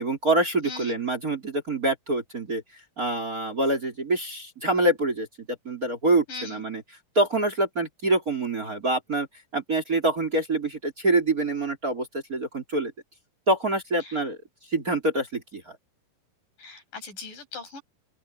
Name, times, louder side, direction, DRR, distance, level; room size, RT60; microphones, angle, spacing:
voice 1, 0.0-2.6 3.0-5.3 5.7-6.8 7.2-9.3 9.5-12.9 13.5-14.4 14.7-15.8, right 2 dB, 25° right, 3.7 m, -25 dB
voice 2, 0.6-1.0 6.3-6.6 14.0-14.2 16.6-17.8, left 3 dB, 65° left, 7.8 m, -39 dB
open air
omnidirectional pair, 4.2 m